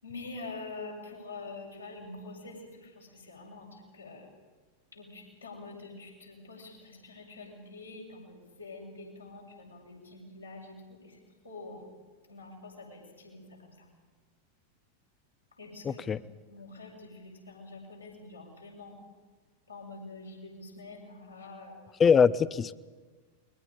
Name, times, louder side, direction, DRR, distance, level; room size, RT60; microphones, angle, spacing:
voice 1, 0.0-4.3 4.9-11.2 11.4-11.8 12.3-13.9 15.6-16.1 16.5-19.0 19.7-21.8, left 3 dB, 80° left, -3 dB, 6.4 m, -46 dB
voice 2, 15.8-16.2 22.0-22.7, left 6 dB, 20° left, 19 dB, 0.6 m, -22 dB
29.0 x 21.5 x 5.2 m, 1.4 s
figure-of-eight pair, 90°, 0 cm